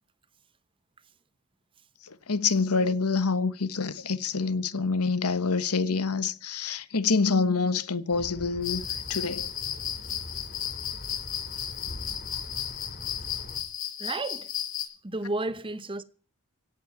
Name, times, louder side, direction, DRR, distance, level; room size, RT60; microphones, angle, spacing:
voice 1, 2.3-8.8 9.1-9.5, left 4 dB, 85° left, 1.2 m, -26 dB
sound 1, 8.1-13.6, left 1 dB, 45° left, 2.5 m, -43 dB
sound 2, 8.6-14.8, left 10 dB, 60° left, 5.9 m, -34 dB
voice 2, 14.0-14.5 15.0-16.0, right 2 dB, 25° right, 0.8 m, -32 dB
17.0 x 7.9 x 9.4 m
head